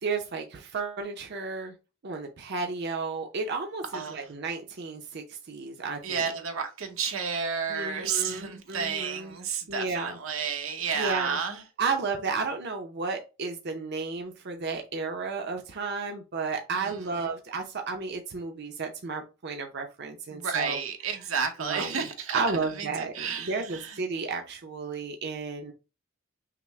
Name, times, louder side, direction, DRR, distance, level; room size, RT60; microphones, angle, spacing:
voice 1, 0.0-1.7 2.0-6.3 7.7-9.4 9.7-10.2 10.9-11.4 11.8-20.8 21.1-21.2 21.6-22.1 22.3-25.7, right 4 dB, 55° right, 0.6 m, -33 dB
voice 2, 3.9-4.2 6.0-11.6 16.7-17.0 20.3-22.4 22.8-24.0, right 6 dB, 90° right, 0.9 m, -31 dB
5.8 x 2.1 x 3.2 m
head